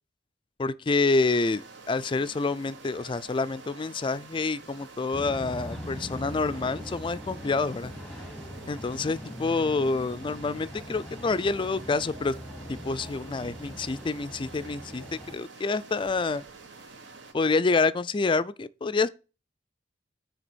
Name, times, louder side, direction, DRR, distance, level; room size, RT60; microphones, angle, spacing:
voice 1, 0.6-1.6 1.9-7.9 8.7-12.3 12.8-15.0 15.3-16.4 17.3-19.1, left 3 dB, 25° left, 0.4 m, -27 dB
sound 1, 1.1-17.3, right 3 dB, 70° right, 1.2 m, -48 dB
sound 2, 5.1-15.4, left 1 dB, ahead, 0.9 m, -41 dB
9.1 x 3.4 x 6.1 m
head